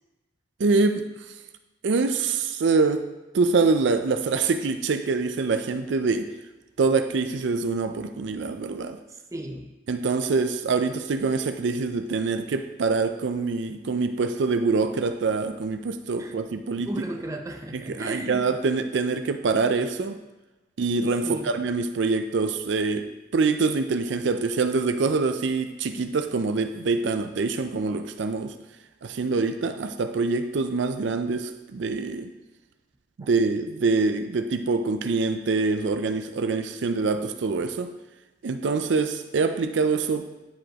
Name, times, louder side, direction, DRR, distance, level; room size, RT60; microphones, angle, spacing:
voice 1, 0.6-1.1 1.8-3.0 3.3-6.3 6.8-9.0 9.9-16.9 17.7-20.2 20.8-28.5 29.0-32.3 33.2-37.9 38.4-40.3, right 4 dB, 70° right, 8 dB, 0.4 m, -25 dB
voice 2, 9.1-9.7 16.2-16.4 16.8-18.4 21.2-21.5 33.2-33.3, right 1 dB, 15° right, 2 dB, 0.6 m, -35 dB
10.0 x 4.8 x 2.9 m, 1.1 s
head